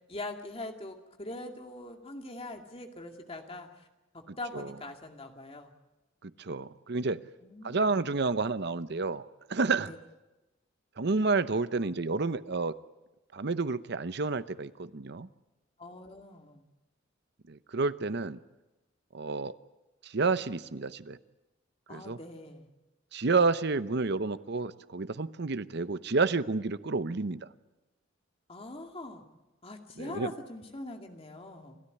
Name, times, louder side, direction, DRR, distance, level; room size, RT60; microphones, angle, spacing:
voice 1, 0.1-3.7 4.1-5.7 7.4-7.9 9.8-10.0 15.8-16.6 21.9-22.7 28.5-29.2 29.6-31.8, left 2 dB, 30° left, 4 dB, 2.3 m, -42 dB
voice 2, 4.3-4.7 6.2-7.2 7.6-9.9 11.0-12.7 13.3-15.3 17.5-18.4 19.1-19.5 20.0-21.2 21.9-22.2 23.1-27.5 30.0-30.3, right 3 dB, 55° right, 14 dB, 0.8 m, -30 dB
29.0 x 13.5 x 9.7 m, 1.1 s
head